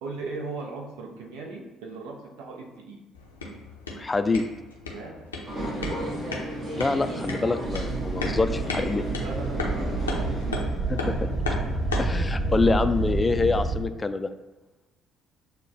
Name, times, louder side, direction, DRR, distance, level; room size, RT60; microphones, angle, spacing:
voice 1, 0.0-3.0 4.9-5.2 9.2-10.3 12.4-12.5, right 3 dB, 65° right, 0 dB, 0.7 m, -38 dB
sound 1, 3.1-12.2, left 3 dB, 85° left, 0.5 m, -36 dB
voice 2, 4.0-4.4 6.7-9.0 10.9-11.1 12.0-14.3, left 3 dB, 25° left, 9 dB, 0.3 m, -25 dB
sound 2, 5.5-10.6, right 1 dB, 40° right, 1.0 m, -33 dB
sound 3, 7.6-13.8, right 2 dB, 10° right, 1.2 m, -29 dB
6.6 x 2.2 x 2.5 m, 1.1 s
figure-of-eight pair, 50°, 0 cm